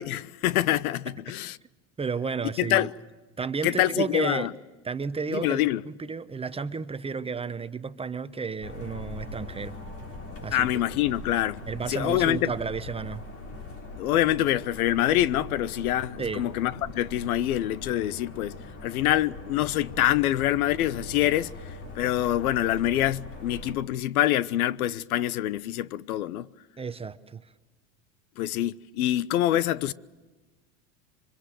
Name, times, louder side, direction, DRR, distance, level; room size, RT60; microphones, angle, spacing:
voice 1, 0.0-1.6 2.6-2.9 3.6-4.5 5.3-5.8 10.5-11.6 11.9-12.5 14.0-21.5 22.0-26.5 28.4-29.9, left 13 dB, 80° left, 1.0 m, -25 dB
voice 2, 2.0-2.9 3.4-4.5 4.8-5.6 5.8-9.8 10.4-10.7 11.7-13.2 16.2-16.5 26.8-27.4, right 5 dB, 15° right, 0.9 m, -32 dB
sound 1, 8.6-23.8, left 2 dB, 30° left, 5.3 m, -41 dB
27.5 x 24.5 x 7.6 m
supercardioid pair, 120°, 43 cm